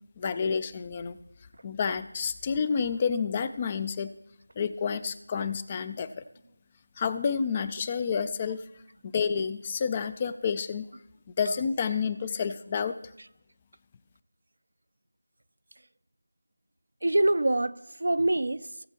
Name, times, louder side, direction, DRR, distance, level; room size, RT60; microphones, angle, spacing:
voice 1, 0.2-1.2 1.6-4.1 4.6-6.2 7.0-8.6 9.0-10.9 11.4-12.9, left 6 dB, 20° left, 0.3 m, -29 dB
voice 2, 17.0-18.9, right 1 dB, 65° right, 0.4 m, -25 dB
17.0 x 7.3 x 2.9 m
figure-of-eight pair, 170°, 0 cm